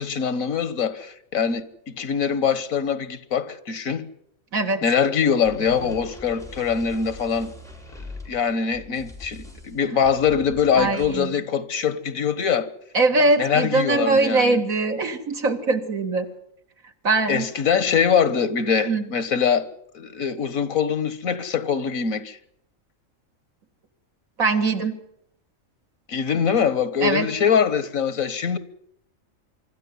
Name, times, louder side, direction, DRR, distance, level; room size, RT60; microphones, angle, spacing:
voice 1, 0.0-4.1 4.8-7.5 8.3-12.7 13.4-14.6 17.3-19.7 19.9-22.4 26.1-28.6, left 7 dB, 85° left, 1.7 m, -23 dB
voice 2, 4.5-4.8 10.8-11.3 12.9-16.3 17.0-17.5 18.9-19.1 24.4-25.0 27.0-27.3, right 3 dB, 85° right, 2.5 m, -21 dB
sound 1, 5.4-11.1, left 2 dB, ahead, 4.1 m, -42 dB
25.0 x 13.5 x 9.7 m
omnidirectional pair, 1.4 m